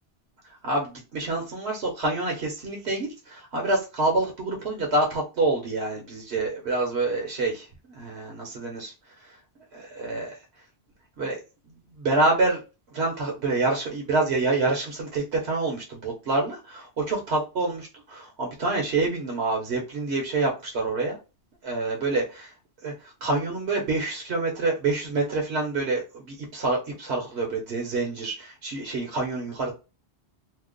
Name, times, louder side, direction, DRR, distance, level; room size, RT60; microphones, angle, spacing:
voice 1, 0.6-7.6 7.9-8.9 9.7-10.3 11.2-11.4 12.0-12.6 12.9-21.2 21.6-22.5 22.8-22.9 23.2-29.7, right 2 dB, 75° right, 0 dB, 1.1 m, -27 dB
2.8 x 2.0 x 3.7 m, 0.29 s
omnidirectional pair, 1.1 m